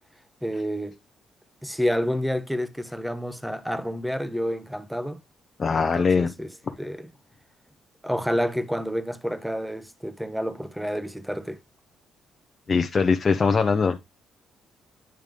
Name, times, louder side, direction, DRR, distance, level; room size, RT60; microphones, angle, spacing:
voice 1, 0.4-1.0 1.6-5.2 5.7-6.5 6.8-7.1 8.0-11.6, equal, ahead, 0.9 m, -29 dB
voice 2, 5.6-6.3 12.7-14.0, left 5 dB, 35° left, 0.8 m, -21 dB
9.2 x 3.3 x 5.2 m
cardioid pair, 90°, 0 cm